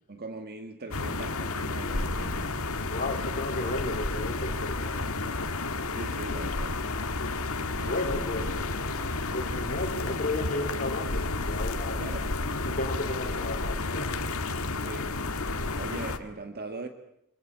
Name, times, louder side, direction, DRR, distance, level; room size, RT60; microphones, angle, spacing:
voice 1, 0.1-2.6 5.9-6.9 7.8-8.5 12.0-12.3 14.8-15.1 15.8-16.9, right 2 dB, 45° right, 6 dB, 1.7 m, -40 dB
sound 1, 0.9-16.2, left 3 dB, 65° left, 2.0 m, -31 dB
voice 2, 2.9-5.0 7.8-8.6 9.3-12.0 12.6-14.2, left 2 dB, 40° left, 3 dB, 3.9 m, -33 dB
26.0 x 23.0 x 8.8 m, 0.76 s
head